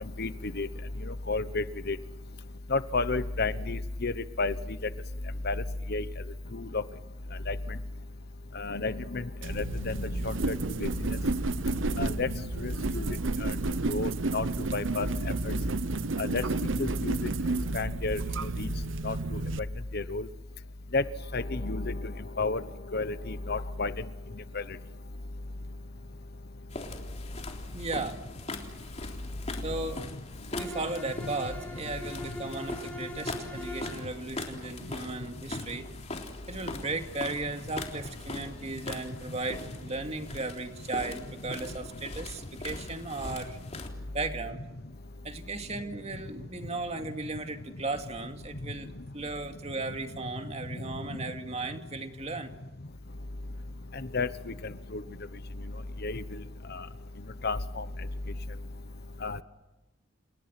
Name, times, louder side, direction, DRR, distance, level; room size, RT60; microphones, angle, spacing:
voice 1, 1.3-2.0 2.7-4.1 4.4-4.5 5.4-5.5 5.9-6.0 6.5-6.8 7.5-7.6 8.6-9.2 9.5-10.9 12.0-12.3 12.6-13.2 13.4-13.5 13.9-14.4 14.7-15.1 16.2-16.4 16.8-17.2 17.7-18.2 18.6-18.7 19.0-19.1 19.9-20.3 20.9-21.0 21.3-22.0 22.4-22.6 22.9-23.9 24.5-24.6 54.1-54.3 54.9-55.0 56.0-56.2 56.7-56.8 57.4-57.8 59.2-59.4, left 3 dB, 50° left, 13 dB, 1.1 m, -30 dB
sound 1, 9.4-19.6, right 3 dB, 65° right, 0.8 m, -31 dB
sound 2, 26.7-43.9, left 2 dB, 30° left, 3.6 m, -41 dB
voice 2, 27.7-28.2 29.6-30.1 30.5-35.9 36.5-43.6 44.1-44.6 45.2-52.5, right 3 dB, 30° right, 6 dB, 2.5 m, -36 dB
Bowed string instrument, 30.5-34.1, left 1 dB, 10° left, 6.2 m, -41 dB
30.0 x 29.0 x 6.0 m, 1.1 s
head